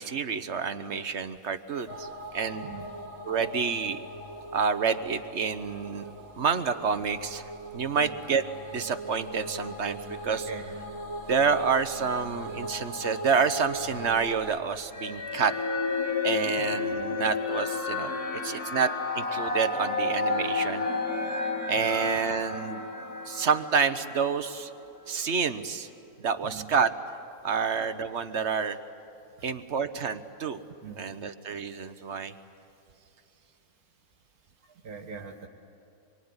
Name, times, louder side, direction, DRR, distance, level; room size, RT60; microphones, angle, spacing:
voice 1, 0.0-2.1 2.3-2.7 3.2-4.0 4.5-6.1 6.3-7.5 7.7-8.4 8.7-10.5 11.3-15.5 16.2-20.9 21.7-22.8 23.3-24.7 25.1-25.9 26.2-26.9 27.4-28.8 29.4-30.6 31.0-32.3, right 6 dB, 50° right, 10 dB, 1.2 m, -28 dB
sound 1, 1.9-14.6, right 1 dB, 20° right, 2.3 m, -40 dB
voice 2, 10.5-10.8 16.6-16.7 21.8-22.0 26.4-26.7 27.5-27.6 29.4-29.5 30.8-31.0 34.8-35.5, right 5 dB, 75° right, 3 dB, 2.2 m, -42 dB
sound 2, 14.9-24.4, left 3 dB, 75° left, 3.4 m, -31 dB
26.5 x 23.0 x 9.7 m, 2.6 s
omnidirectional pair, 1.6 m